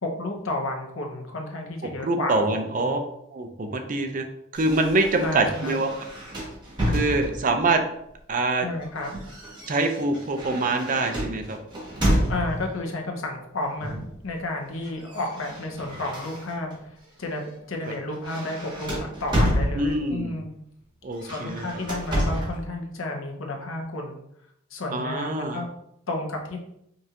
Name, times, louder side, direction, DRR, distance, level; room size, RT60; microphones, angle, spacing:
voice 1, 0.0-3.0 5.2-5.8 8.6-9.1 12.3-14.0 14.2-17.4 17.7-20.5 21.2-24.2 24.7-25.7 26.1-26.6, left 2 dB, 85° left, 2 dB, 0.8 m, -32 dB
voice 2, 2.0-3.0 3.3-4.3 4.5-5.9 6.9-7.8 8.3-8.7 9.7-11.6 19.8-20.4 21.0-21.7 24.9-25.6, right 2 dB, 40° right, 5 dB, 0.5 m, -25 dB
sound 1, 4.5-7.6 8.6-12.8 13.8-14.2 14.5-16.8 17.2-17.5 17.8-20.2 21.1-22.6, equal, 20° right, 1.1 m, -29 dB
5.2 x 2.5 x 2.8 m, 0.76 s
head